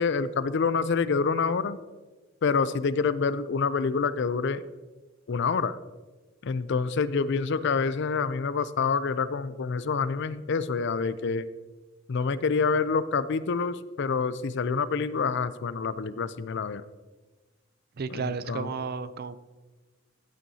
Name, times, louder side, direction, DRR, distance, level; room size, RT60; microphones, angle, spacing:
voice 1, 0.0-1.8 2.4-4.6 5.3-5.8 6.4-11.5 12.1-16.8 18.1-18.7, left 5 dB, 65° left, 15 dB, 0.4 m, -27 dB
voice 2, 18.0-19.4, right 5 dB, 55° right, 14 dB, 0.5 m, -32 dB
14.0 x 9.1 x 2.8 m, 1.3 s
head